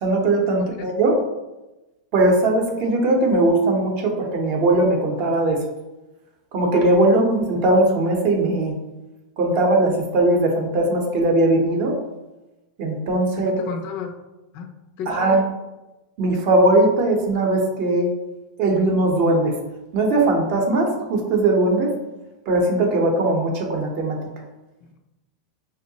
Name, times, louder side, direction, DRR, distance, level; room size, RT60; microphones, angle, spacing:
voice 1, 0.0-1.1 2.1-5.6 6.5-8.7 9.4-12.0 12.8-13.6 15.1-15.4 16.2-18.1 18.6-19.5 19.9-21.9 22.5-24.2, right 2 dB, 40° right, 1 dB, 0.7 m, -19 dB
voice 2, 13.4-14.1 14.5-15.5, left 6 dB, 40° left, 4 dB, 0.4 m, -33 dB
4.5 x 2.1 x 2.7 m, 1.0 s
supercardioid pair, 150°, 5 cm